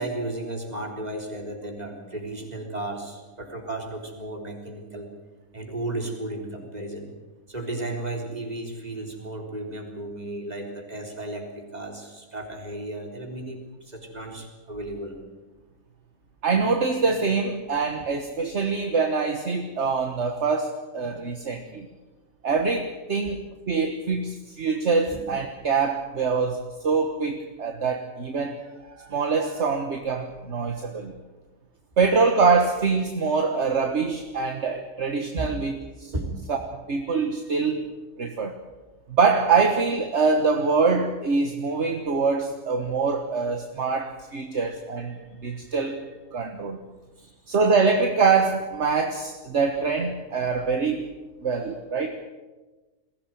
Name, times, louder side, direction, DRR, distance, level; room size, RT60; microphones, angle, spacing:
voice 1, 0.0-5.1 5.5-7.1 7.5-15.2 21.0-21.3 21.7-21.8 23.2-23.3 25.1-25.2 35.4-35.5 36.1-36.3 47.2-47.3, right 2 dB, 30° right, 2 dB, 3.9 m, -34 dB
voice 2, 16.4-21.9 22.4-31.1 32.0-36.1 36.5-37.9 38.2-38.6 39.1-46.0 46.3-46.8 47.5-51.1 51.4-52.2, right 4 dB, 55° right, 6 dB, 1.6 m, -24 dB
21.5 x 16.5 x 9.2 m, 1.2 s
omnidirectional pair, 1.4 m